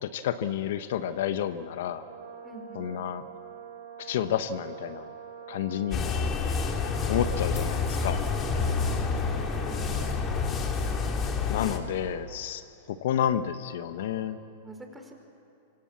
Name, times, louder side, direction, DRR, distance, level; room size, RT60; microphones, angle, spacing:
voice 1, 0.0-2.0 2.7-3.2 4.0-5.1 5.5-6.3 7.1-8.2 11.5-12.6 12.9-14.4, left 10 dB, 65° left, 11 dB, 1.1 m, -30 dB
Brass instrument, 2.1-10.9, right 8 dB, 65° right, 4.2 m, -44 dB
voice 2, 2.4-3.1 8.6-9.2 9.7-10.3 14.6-15.1, right 3 dB, 10° right, 3 dB, 4.5 m, -47 dB
sound 1, 5.9-11.8, left 5 dB, 30° left, 3.0 m, -28 dB
26.0 x 25.0 x 7.4 m, 2.8 s
hypercardioid pair, 105°, 0 cm